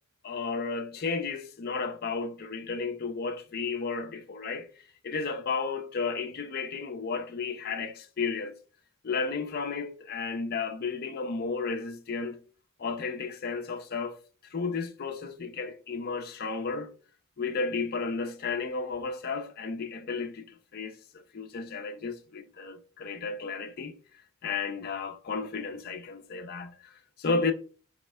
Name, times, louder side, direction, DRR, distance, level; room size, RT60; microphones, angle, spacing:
voice 1, 0.2-4.7 5.0-8.5 9.0-12.4 12.8-14.2 14.5-16.9 17.4-23.9 24.4-27.5, left 4 dB, 45° left, 0.4 m, -33 dB
4.3 x 3.2 x 3.3 m
head